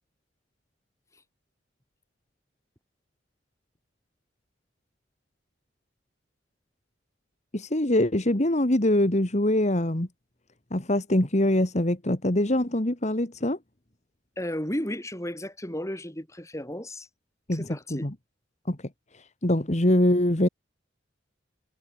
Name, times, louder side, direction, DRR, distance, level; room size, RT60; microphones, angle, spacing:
voice 1, 7.5-10.1 10.7-13.6 17.5-18.1 18.7-18.8 19.1-20.5, left 1 dB, 40° left, 2.0 m, -24 dB
voice 2, 14.4-17.1 17.5-18.1, left 1 dB, 15° left, 4.7 m, -33 dB
head